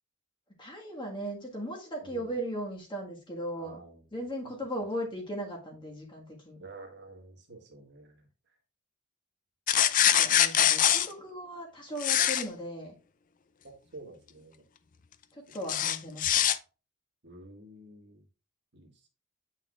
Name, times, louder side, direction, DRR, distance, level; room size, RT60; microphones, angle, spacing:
voice 1, 0.6-3.8 4.1-6.6 10.2-12.9 15.3-16.4, equal, 20° left, 0 dB, 1.5 m, -37 dB
voice 2, 2.0-2.3 3.6-4.1 4.4-4.5 6.6-8.6 12.0-12.3 13.6-14.6 15.5-15.7 17.2-18.2 18.7-19.1, right 2 dB, 50° right, 2 dB, 1.6 m, -50 dB
sound 1, 9.7-11.1 12.0-12.4 15.7-16.6, left 10 dB, 35° left, 0.4 m, -23 dB
8.8 x 5.7 x 2.4 m, 0.34 s
head